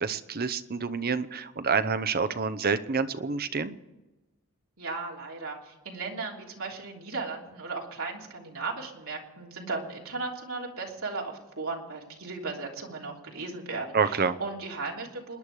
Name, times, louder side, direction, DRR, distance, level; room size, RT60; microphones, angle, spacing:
voice 1, 0.0-3.8 13.9-14.4, right 5 dB, 45° right, 11 dB, 0.8 m, -28 dB
voice 2, 4.8-15.4, right 3 dB, 65° right, -1 dB, 3.2 m, -36 dB
27.0 x 10.5 x 4.8 m, 1.1 s
head